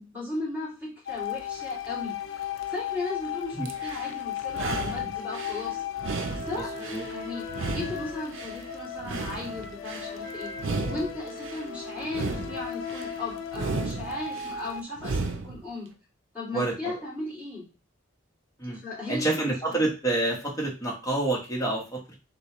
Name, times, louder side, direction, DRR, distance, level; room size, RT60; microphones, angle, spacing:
voice 1, 0.0-2.1 2.7-5.8 6.3-7.4 7.7-15.9 16.3-17.7 18.7-19.8, left 2 dB, 10° right, -8 dB, 2.3 m, -36 dB
sound 1, 1.1-14.8, left 8 dB, 70° left, 0.5 m, -36 dB
sound 2, 3.7-4.1 4.5-5.6 6.0-7.1 7.5-8.6 9.0-10.1 10.5-11.6 12.0-13.1 13.5-14.5 15.0-15.6, right 3 dB, 65° right, 0.6 m, -34 dB
Wind instrument woodwind instrument, 5.4-13.2, left 2 dB, 55° left, 0.9 m, -45 dB
voice 2, 6.5-7.1 16.5-16.9 18.6-18.8 19.1-22.2, right 2 dB, 15° left, -2 dB, 1.1 m, -28 dB
6.5 x 2.3 x 3.0 m, 0.33 s
head